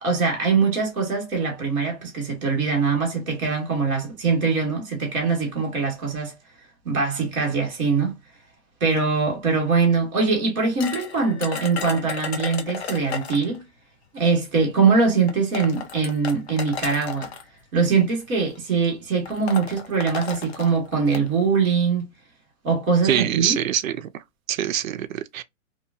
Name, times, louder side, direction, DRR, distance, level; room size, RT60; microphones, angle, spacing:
voice 1, 0.0-6.3 6.8-8.1 8.8-13.6 14.1-17.3 17.7-22.0 22.6-23.6, right 5 dB, ahead, 0.5 m, -22 dB
sound 1, 10.8-13.6 14.6-14.7 15.3-17.4 18.3-18.6 18.8-18.9 19.3-21.3, left 6 dB, 50° left, 0.7 m, -34 dB
voice 2, 23.0-24.0 24.5-25.4, right 11 dB, 75° right, 0.5 m, -24 dB
2.7 x 2.7 x 2.5 m
hypercardioid pair, 175°, 41 cm